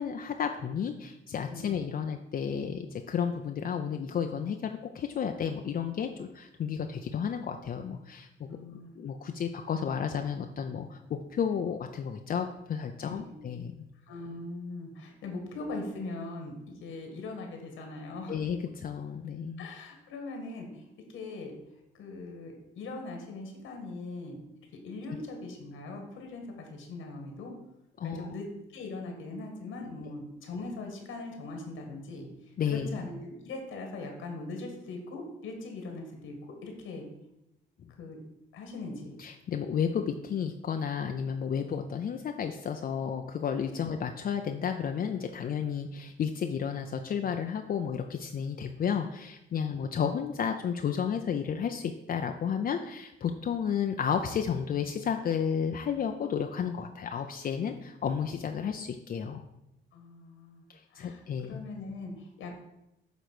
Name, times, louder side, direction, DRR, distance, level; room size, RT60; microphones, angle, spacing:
voice 1, 0.0-8.6 9.0-13.7 18.3-19.7 28.0-28.3 32.6-33.0 39.2-59.4 60.7-61.6, left 7 dB, 45° left, 5 dB, 0.5 m, -32 dB
voice 2, 8.5-8.9 13.0-13.3 14.1-18.4 19.6-21.5 21.9-24.4 24.8-27.5 28.0-28.4 28.7-32.3 32.7-36.3 36.6-37.1 38.0-38.2 38.5-39.1 53.5-53.6 57.5-57.9 59.9-62.5, left 3 dB, 85° left, 3 dB, 1.8 m, -41 dB
8.1 x 3.0 x 6.1 m, 0.87 s
cardioid pair, 90°, 20 cm